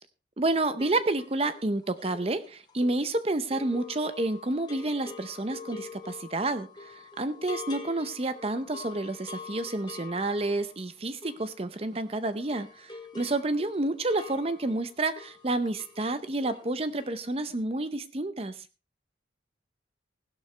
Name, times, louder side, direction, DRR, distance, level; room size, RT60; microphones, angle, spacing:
voice 1, 0.4-18.6, right 2 dB, 30° right, 12 dB, 0.7 m, -30 dB
sound 1, 0.8-12.1 12.3-16.1 16.3-16.7 17.0-17.1, left 3 dB, 25° left, 1.8 m, -45 dB
16.0 x 11.5 x 3.3 m, 0.31 s
head